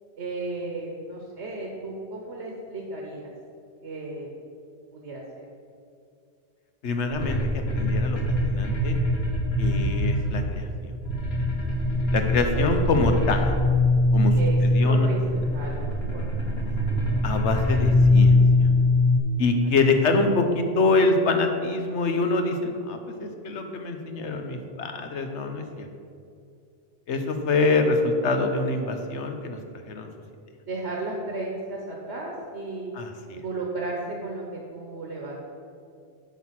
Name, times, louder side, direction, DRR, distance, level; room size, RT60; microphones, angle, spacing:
voice 1, 0.2-3.3 3.8-4.3 4.9-5.5 14.4-16.5 19.8-20.0 30.7-32.9 33.3-35.4, right 2 dB, 70° right, -1 dB, 1.4 m, -34 dB
voice 2, 6.8-8.2 8.4-9.0 9.6-10.9 12.1-13.5 14.1-15.1 17.2-18.7 19.4-25.9 27.1-29.6 29.9-30.1 32.9-33.4, left 3 dB, 75° left, 5 dB, 1.2 m, -25 dB
sound 1, 7.1-10.7 11.0-19.2, left 2 dB, 60° left, 1.7 m, -22 dB
8.8 x 6.1 x 5.8 m, 2.4 s
omnidirectional pair, 1.2 m